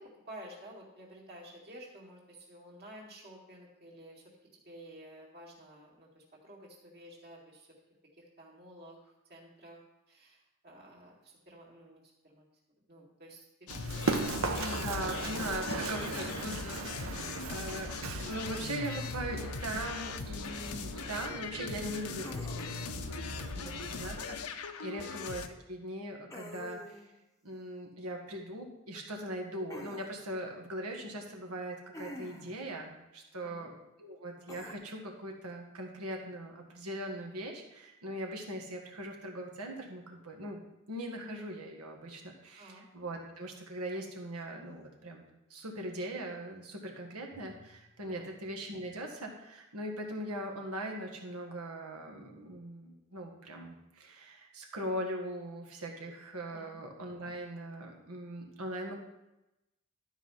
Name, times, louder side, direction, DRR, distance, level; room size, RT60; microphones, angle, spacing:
voice 1, 0.0-4.2 4.5-7.7 8.2-9.8 10.1-12.5 12.9-14.7 15.0-15.5 17.0-17.3 23.5-23.8 24.9-25.1 33.4-33.7 42.6-42.8 48.1-48.2 56.5-56.8, right 1 dB, 45° right, -2 dB, 2.2 m, -52 dB
sound 1, 13.7-25.5, left 5 dB, 80° left, 0.7 m, -40 dB
Run, 13.7-24.2, right 3 dB, 60° right, 0.9 m, -39 dB
voice 2, 14.4-27.0 27.4-33.7 34.0-40.6 40.9-45.2 45.5-59.0, right 1 dB, 90° right, 2 dB, 1.7 m, -40 dB
sound 2, 22.2-23.0 26.3-27.1 29.7-30.1 31.9-32.6 34.5-34.7, left 2 dB, 15° left, 0.7 m, -46 dB
12.0 x 4.8 x 5.6 m, 0.95 s
head